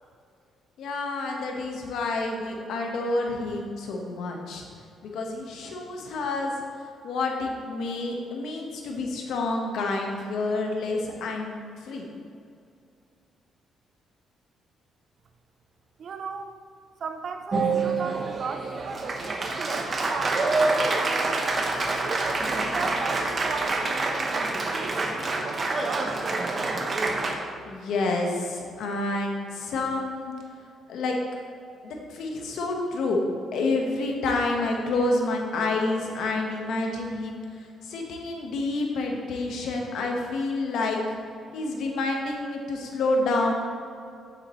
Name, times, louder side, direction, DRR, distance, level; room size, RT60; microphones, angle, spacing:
voice 1, 0.8-4.6 5.0-6.5 7.0-12.0 27.7-30.3 30.9-31.2 31.8-33.2 33.5-41.0 41.5-43.5, left 2 dB, 75° left, 1 dB, 1.3 m, -28 dB
voice 2, 16.0-16.6 17.0-21.5 22.0-26.2, right 5 dB, 55° right, 7 dB, 0.6 m, -37 dB
Applause, 17.5-27.3, right 3 dB, 40° right, 1.0 m, -27 dB
9.2 x 7.5 x 3.1 m, 2.4 s
cardioid pair, 90°, 0 cm